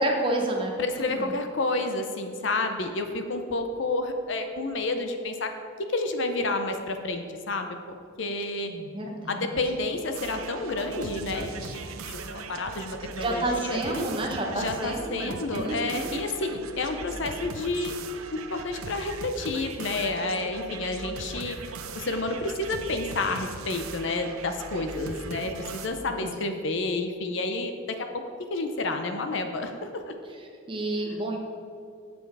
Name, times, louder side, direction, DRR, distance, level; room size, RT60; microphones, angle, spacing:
voice 1, 0.0-1.3 8.7-9.5 13.2-16.1 26.1-26.3 30.7-31.4, right 1 dB, 25° right, 0 dB, 1.0 m, -30 dB
voice 2, 0.8-5.5 5.9-7.8 8.2-8.7 9.3-14.1 14.5-17.9 18.3-21.6 21.9-28.0 28.5-30.1, left 2 dB, 60° left, 6 dB, 0.7 m, -30 dB
sound 1, 10.1-25.9, right 4 dB, 85° right, 0.6 m, -39 dB
7.8 x 6.9 x 4.8 m, 2.3 s
head